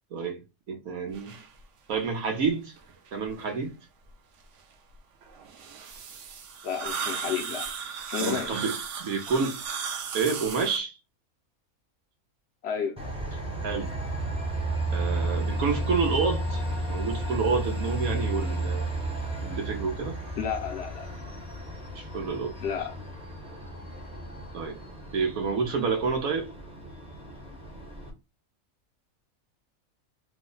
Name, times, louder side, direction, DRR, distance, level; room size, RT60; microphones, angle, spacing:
voice 1, 0.7-1.4 1.9-2.7 3.1-3.7 8.2-9.6 10.1-10.9 13.6-13.9 14.9-18.9 19.4-20.2 21.9-22.5 24.5-24.8 25.1-26.5, right 5 dB, 90° right, 1.3 m, -29 dB
sound 1, 1.1-1.5 2.1-2.2 2.8-3.5 5.2-10.8, right 6 dB, 65° right, 0.9 m, -36 dB
voice 2, 6.6-7.7 8.1-8.6 12.6-13.0 20.4-21.1 22.6-23.1 27.5-27.6, left 7 dB, 65° left, 0.7 m, -32 dB
Train, 13.0-28.1, right 1 dB, 5° right, 0.4 m, -33 dB
3.0 x 2.1 x 3.7 m
omnidirectional pair, 1.4 m